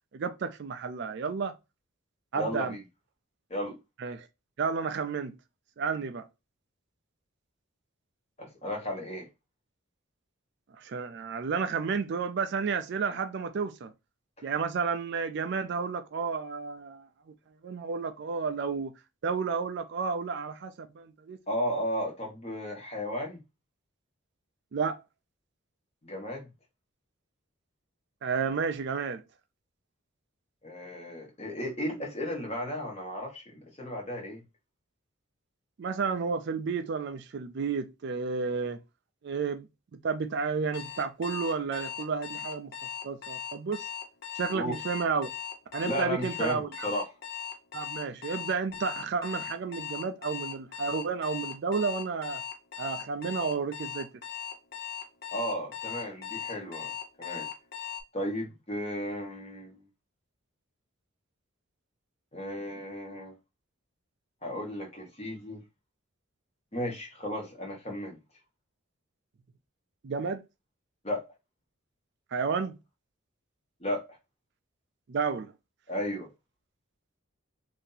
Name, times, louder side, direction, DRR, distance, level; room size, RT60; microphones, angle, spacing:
voice 1, 0.1-1.5 2.3-2.8 4.0-4.3 4.6-5.3 5.8-6.3 10.8-13.9 14.4-17.1 17.6-18.9 19.2-21.4 24.7-25.0 28.2-29.2 35.8-38.8 39.2-39.7 40.0-42.7 43.0-43.9 44.3-45.3 45.7-46.9 47.7-52.4 52.8-54.1 70.0-70.4 72.3-72.7 75.1-75.5, right 5 dB, 55° right, 0.4 m, -31 dB
voice 2, 2.3-2.8 3.5-3.8 8.4-9.3 14.4-14.5 21.5-23.4 26.0-26.5 30.6-34.4 44.5-44.8 45.8-47.0 55.3-56.9 57.2-57.5 58.1-59.8 62.3-63.3 64.4-65.6 66.7-68.2 71.0-71.2 73.8-74.0 75.9-76.3, left 1 dB, 30° left, 1.1 m, -34 dB
Alarm, 40.7-58.0, left 8 dB, 50° left, 0.6 m, -39 dB
2.7 x 2.7 x 3.8 m
head